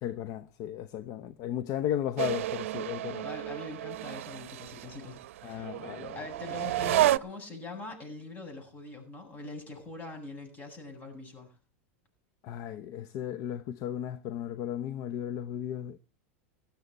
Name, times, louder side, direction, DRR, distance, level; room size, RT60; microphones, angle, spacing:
voice 1, 0.0-3.2 5.4-6.2 12.4-16.0, left 11 dB, 50° left, 0.8 m, -35 dB
sound 1, 2.2-7.2, right 14 dB, 80° right, 0.6 m, -31 dB
voice 2, 3.2-5.7 6.1-11.5, left 3 dB, 25° left, 8.0 m, -43 dB
16.5 x 13.0 x 4.1 m
supercardioid pair, 120°, 7 cm